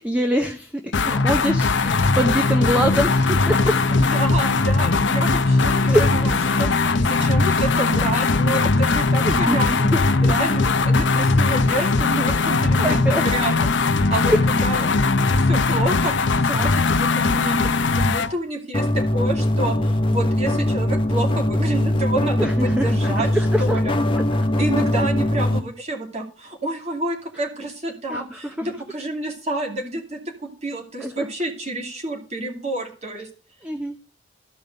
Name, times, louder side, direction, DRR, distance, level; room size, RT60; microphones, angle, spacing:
voice 1, 0.0-3.8 5.9-6.3 9.2-10.0 12.8-13.2 14.3-14.4 22.4-23.8 24.1-24.2 28.1-28.7 31.0-31.3 33.6-33.9, equal, 5° right, 5 dB, 0.8 m, -24 dB
sound 1, 0.9-18.3, left 3 dB, 70° left, 0.7 m, -19 dB
voice 2, 3.9-9.9 10.2-13.0 13.3-13.7 14.1-16.1 16.4-23.9 24.6-33.3, right 2 dB, 35° right, 1 dB, 2.5 m, -29 dB
sound 2, 18.7-25.6, left 1 dB, 25° left, 1.0 m, -21 dB
13.0 x 5.4 x 6.6 m, 0.39 s
head